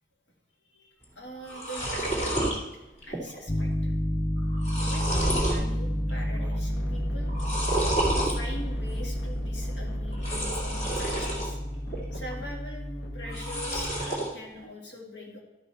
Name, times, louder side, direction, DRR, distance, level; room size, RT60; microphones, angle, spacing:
voice 1, 0.7-3.9 4.7-7.3 8.1-11.6 11.9-15.4, equal, 85° left, 0 dB, 2.1 m, -43 dB
sound 1, 1.0-1.1 1.4-2.6 3.0-3.4 3.7-3.8 4.4-5.6 6.1-6.6 7.3-8.4 10.1-11.5 11.9-12.5 13.2-14.3, right 1 dB, 40° left, 2.2 m, -30 dB
Piano, 3.5-13.7, equal, 20° left, 0.6 m, -30 dB
sound 2, 5.7-14.3, left 1 dB, 60° left, 1.2 m, -41 dB
12.5 x 5.5 x 4.2 m, 1.0 s
head